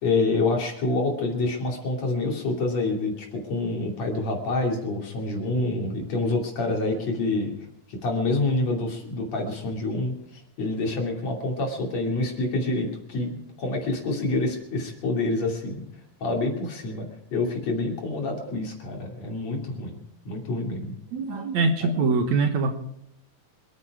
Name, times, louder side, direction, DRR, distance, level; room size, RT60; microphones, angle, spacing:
voice 1, 0.0-7.6 7.9-15.9 16.2-20.0 20.3-21.0, left 2 dB, 55° left, 1 dB, 3.8 m, -27 dB
voice 2, 21.1-22.8, right 4 dB, 65° right, 5 dB, 2.4 m, -23 dB
25.5 x 9.8 x 4.8 m, 0.77 s
omnidirectional pair, 3.9 m